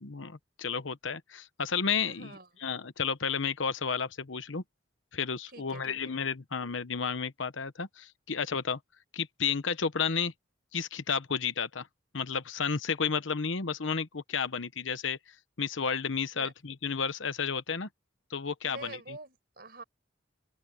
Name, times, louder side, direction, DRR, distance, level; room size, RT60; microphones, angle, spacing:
voice 1, 0.0-4.6 5.1-8.8 9.1-10.3 10.7-11.9 12.1-15.2 15.6-17.9 18.3-19.0, left 6 dB, 80° left, 1.0 m, -32 dB
voice 2, 2.1-2.7 5.5-6.2 16.3-16.5 18.6-19.8, right 2 dB, 50° right, 5.3 m, -46 dB
head